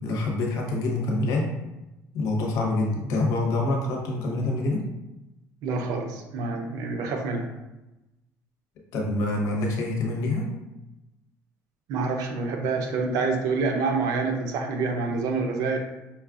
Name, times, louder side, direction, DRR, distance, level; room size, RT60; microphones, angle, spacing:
voice 1, 0.0-1.5 2.1-4.9 8.9-10.5, left 2 dB, 70° left, 0 dB, 1.0 m, -26 dB
voice 2, 5.6-7.5 11.9-15.8, right 4 dB, 70° right, 3 dB, 0.6 m, -27 dB
5.4 x 2.3 x 2.4 m, 0.97 s
cardioid pair, 130°, 6 cm